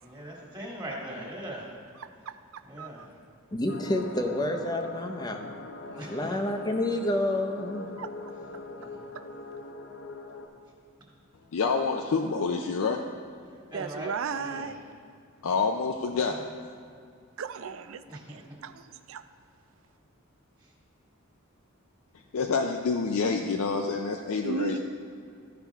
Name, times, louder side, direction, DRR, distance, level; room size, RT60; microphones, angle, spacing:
voice 1, 0.0-1.7 2.6-3.1 5.8-6.7 8.8-9.0 11.0-11.1 13.5-14.8 16.1-16.6 18.1-18.6 20.6-20.7, equal, 20° right, -3 dB, 1.7 m, -41 dB
voice 2, 2.0-3.1 8.0-8.3 9.1-9.2 13.7-14.8 17.4-19.2 24.4-24.8, right 5 dB, 65° right, 11 dB, 0.4 m, -36 dB
voice 3, 3.5-5.4 6.1-8.0, left 1 dB, 20° left, 4 dB, 0.6 m, -29 dB
sound 1, 3.7-10.5, left 2 dB, 55° left, 0.8 m, -42 dB
voice 4, 11.5-13.1 15.4-16.4 22.3-24.8, left 4 dB, 75° left, 3 dB, 0.5 m, -27 dB
14.0 x 5.7 x 3.5 m, 2.4 s
head